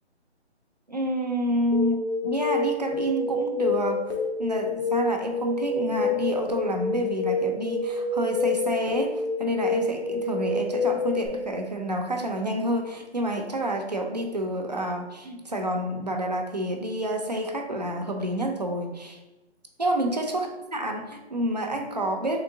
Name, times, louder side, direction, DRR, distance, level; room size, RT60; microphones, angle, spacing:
voice 1, 0.9-19.2 19.8-22.4, right 1 dB, 40° right, 2 dB, 0.4 m, -28 dB
sound 1, 1.7-11.3, left 3 dB, 70° left, 1.0 m, -28 dB
3.7 x 3.2 x 3.7 m, 1.0 s
hypercardioid pair, 170°, 34 cm